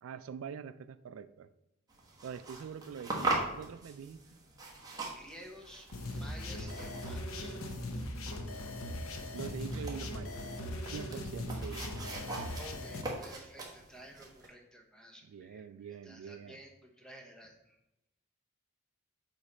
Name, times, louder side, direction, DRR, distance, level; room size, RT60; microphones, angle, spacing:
voice 1, 0.0-1.5 2.2-4.2 9.3-10.4 10.9-11.9 15.2-16.6, right 7 dB, 75° right, 13 dB, 0.3 m, -44 dB
sound 1, 1.9-14.5, right 2 dB, 20° right, 1.2 m, -42 dB
voice 2, 5.2-5.9 6.1-7.6 12.6-17.8, equal, 5° left, 2 dB, 0.8 m, -52 dB
sound 2, 5.9-13.0, left 1 dB, 80° left, 0.8 m, -39 dB
7.9 x 3.2 x 5.2 m, 0.92 s
head